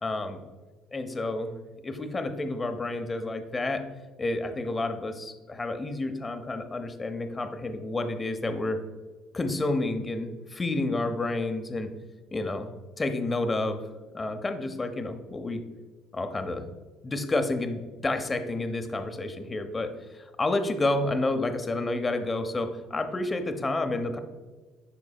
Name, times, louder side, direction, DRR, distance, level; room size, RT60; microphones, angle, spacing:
voice 1, 0.0-0.4 0.9-1.5 1.8-3.9 4.2-8.8 9.3-11.9 12.3-12.7 13.0-13.8 14.1-15.6 16.1-16.7 17.0-24.2, left 2 dB, 20° left, 7 dB, 0.6 m, -30 dB
11.0 x 3.9 x 2.3 m, 1.3 s
cardioid pair, 115°, 0 cm